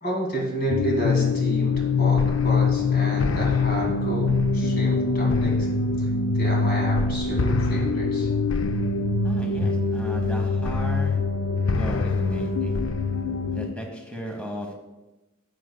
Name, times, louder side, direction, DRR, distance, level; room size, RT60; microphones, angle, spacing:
voice 1, 0.0-5.7 6.0-6.1 6.3-8.3, right 1 dB, 45° left, -2 dB, 2.2 m, -30 dB
sound 1, 0.7-13.7, left 4 dB, 70° left, 0.4 m, -23 dB
voice 2, 9.2-11.2 11.7-12.8 13.5-14.7, left 1 dB, 5° left, 1 dB, 1.0 m, -35 dB
10.0 x 7.8 x 2.2 m, 1.1 s
head